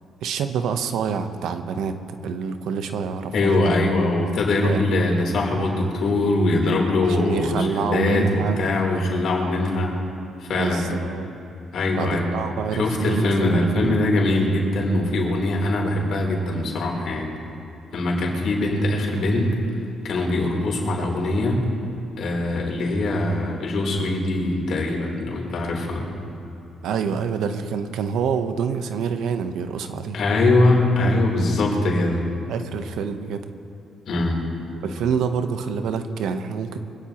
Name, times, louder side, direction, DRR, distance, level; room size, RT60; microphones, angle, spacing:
voice 1, 0.2-2.0 2.2-3.7 4.6-4.9 7.0-8.6 10.5-11.3 11.9-14.1 26.8-30.2 32.5-33.4 34.8-36.8, right 6 dB, 80° right, 8 dB, 0.9 m, -27 dB
voice 2, 3.3-9.9 10.4-10.9 11.7-12.4 12.7-17.3 17.9-19.6 20.0-21.6 22.2-26.1 30.1-32.2 34.1-34.4, left 2 dB, 65° left, -1 dB, 3.6 m, -22 dB
24.5 x 17.0 x 3.0 m, 2.8 s
cardioid pair, 90°, 0 cm